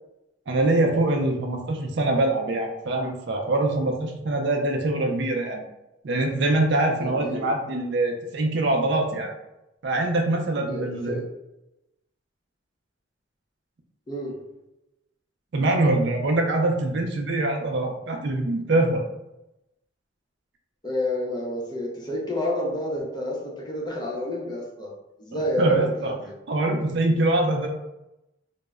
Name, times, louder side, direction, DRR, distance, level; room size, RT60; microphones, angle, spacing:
voice 1, 0.5-5.6 6.0-9.3 9.8-11.2 15.5-19.0 25.3-26.2 26.5-27.7, right 2 dB, 65° right, 2 dB, 0.5 m, -24 dB
voice 2, 7.0-7.5 10.6-11.3 14.1-14.5 20.8-24.9 25.2-26.3, left 1 dB, 20° left, -2 dB, 0.6 m, -30 dB
2.1 x 2.0 x 3.4 m, 0.91 s
head